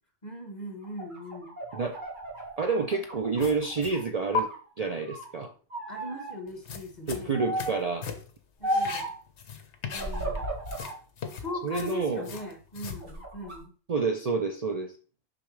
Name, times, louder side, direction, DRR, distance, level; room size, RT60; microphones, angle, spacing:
voice 1, 0.2-1.5 5.9-7.4 8.6-9.1 9.9-10.4 11.3-13.7, left 1 dB, 30° left, 3 dB, 1.4 m, -39 dB
sound 1, 0.8-4.0 4.4-5.3 5.7-6.3 7.3-7.9 8.6-9.2 9.9-11.0 11.5-12.4 12.9-13.6, right 1 dB, 35° right, 2.0 m, -35 dB
voice 2, 2.6-4.5 4.8-5.5 7.1-8.1 11.6-12.3 13.9-14.9, right 4 dB, 75° right, 5 dB, 0.3 m, -28 dB
sound 2, 3.4-4.1 4.3-4.4 6.5-8.4 8.7-10.4 10.6-13.0, left 6 dB, 55° left, 1.1 m, -37 dB
6.7 x 5.6 x 3.3 m, 0.39 s
omnidirectional pair, 1.5 m